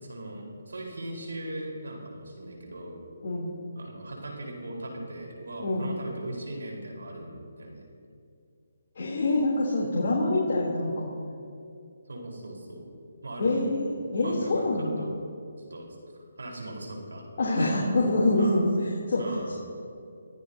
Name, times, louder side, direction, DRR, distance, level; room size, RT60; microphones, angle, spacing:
voice 1, 0.0-3.0 3.7-7.8 12.1-12.9 13.2-13.6 14.2-15.1 15.6-15.9 16.4-17.2 17.6-18.0 18.4-18.6 19.2-19.6, right 1 dB, 75° right, 0 dB, 4.3 m, -39 dB
voice 2, 8.9-11.1 13.4-15.0 17.4-18.7 19.1-19.2, left 2 dB, 55° left, -5 dB, 3.1 m, -25 dB
25.0 x 15.0 x 2.8 m, 2.5 s
figure-of-eight pair, 150°, 0 cm